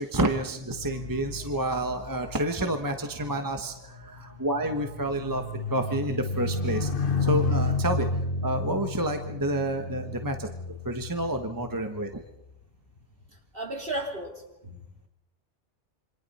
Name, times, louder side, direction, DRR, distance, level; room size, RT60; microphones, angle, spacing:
voice 1, 0.0-6.9 7.2-8.1 8.4-10.5 10.8-12.2, right 1 dB, 20° right, 5 dB, 1.2 m, -29 dB
sound 1, 0.6-12.2 13.0-13.3, left 3 dB, 50° left, 1.4 m, -32 dB
voice 2, 13.5-14.8, right 1 dB, 55° right, 1 dB, 3.6 m, -34 dB
27.5 x 25.0 x 4.3 m, 0.81 s
omnidirectional pair, 1.2 m